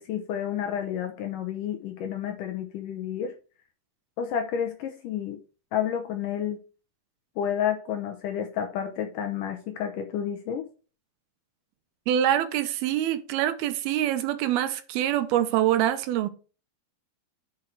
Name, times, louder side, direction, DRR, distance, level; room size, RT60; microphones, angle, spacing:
voice 1, 0.0-3.3 4.2-5.4 5.7-6.6 7.4-10.6, left 9 dB, 75° left, 2.1 m, -30 dB
voice 2, 12.1-16.3, right 11 dB, 80° right, 2.5 m, -25 dB
9.6 x 4.7 x 4.7 m
omnidirectional pair, 4.6 m